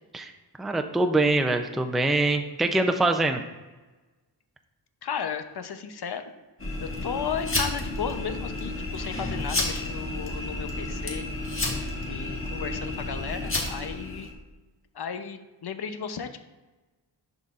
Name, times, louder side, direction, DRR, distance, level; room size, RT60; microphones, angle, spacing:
voice 1, 0.6-3.4, right 2 dB, ahead, 5 dB, 0.5 m, -24 dB
voice 2, 5.0-6.2 7.0-11.2 12.0-14.3 14.9-16.4, left 7 dB, 55° left, 8 dB, 0.8 m, -34 dB
sound 1, 6.6-14.3, left 2 dB, 25° left, 1.6 m, -31 dB
11.0 x 4.0 x 2.5 m, 1.2 s
cardioid pair, 65°, 46 cm